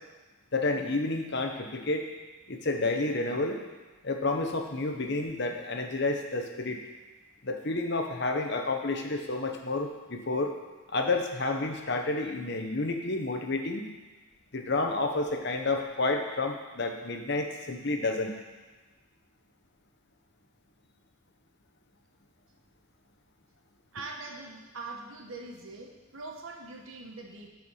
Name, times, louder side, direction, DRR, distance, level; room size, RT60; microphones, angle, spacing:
voice 1, 0.5-2.1 2.5-3.6 4.0-6.8 7.4-10.5 10.9-13.9 14.5-18.3, left 2 dB, 55° left, 4 dB, 1.0 m, -30 dB
voice 2, 23.9-27.5, right 3 dB, 70° right, 2 dB, 1.3 m, -42 dB
13.0 x 4.7 x 5.6 m, 1.2 s
head